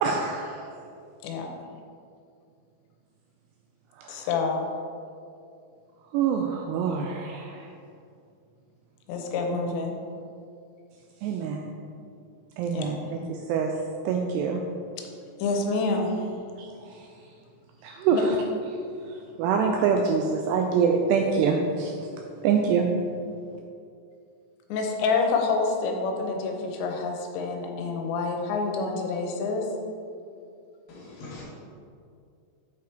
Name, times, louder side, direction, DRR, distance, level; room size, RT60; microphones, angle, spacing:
voice 1, 0.0-0.7 4.0-4.3 6.1-7.7 11.2-11.7 12.6-13.8 14.1-14.6 16.6-17.1 17.8-18.4 19.1-22.1 22.4-22.9, right 6 dB, 85° right, 2 dB, 2.4 m, -25 dB
voice 2, 4.1-4.7 9.1-9.9 12.7-12.9 15.4-16.3 18.1-18.2 24.7-29.7, left 4 dB, 80° left, 2 dB, 3.0 m, -27 dB
voice 3, 30.9-31.4, left 3 dB, 65° left, -6 dB, 2.4 m, -42 dB
8.2 x 4.9 x 4.4 m, 2.4 s
omnidirectional pair, 5.2 m